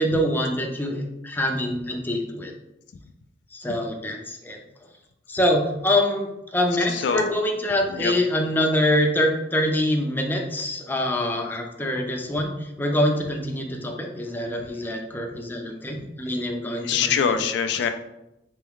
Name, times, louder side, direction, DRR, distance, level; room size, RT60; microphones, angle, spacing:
voice 1, 0.0-2.5 3.5-4.6 5.3-17.5, left 1 dB, 10° left, 1 dB, 0.5 m, -25 dB
voice 2, 6.9-7.3 7.9-8.1 16.8-17.9, left 7 dB, 65° left, 7 dB, 0.3 m, -23 dB
3.4 x 3.4 x 3.5 m, 0.89 s
head